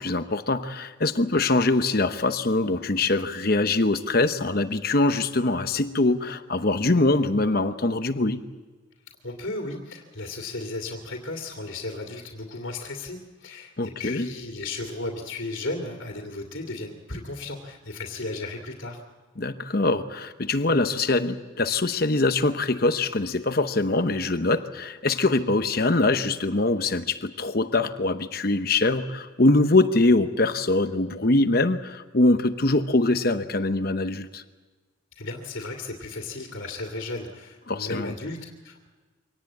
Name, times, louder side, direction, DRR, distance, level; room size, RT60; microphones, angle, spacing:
voice 1, 0.0-8.4 13.8-14.3 19.4-34.4 37.7-38.1, left 2 dB, 50° left, 9 dB, 0.9 m, -23 dB
voice 2, 9.2-19.0 35.2-38.9, left 2 dB, 75° left, 1 dB, 2.5 m, -35 dB
25.0 x 18.5 x 8.5 m, 1.3 s
head